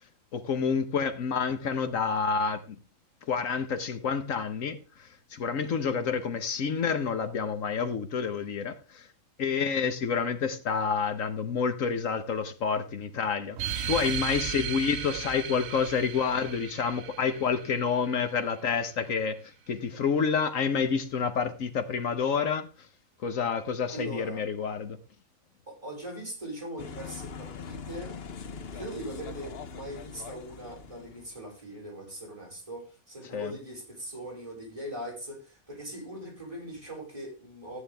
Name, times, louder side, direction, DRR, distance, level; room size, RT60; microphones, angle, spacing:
voice 1, 0.3-2.8 3.3-9.1 9.4-19.4 19.7-22.7 23.2-25.0 33.3-33.5, left 6 dB, 75° left, 1.4 m, -29 dB
sound 1, 13.6-18.6, right 9 dB, 60° right, 0.9 m, -36 dB
voice 2, 23.9-24.4 25.7-28.2 28.4-37.8, right 1 dB, 25° right, 5.1 m, -40 dB
sound 2, 26.8-31.4, left 6 dB, 55° left, 1.0 m, -42 dB
14.5 x 9.4 x 3.4 m
omnidirectional pair, 1.4 m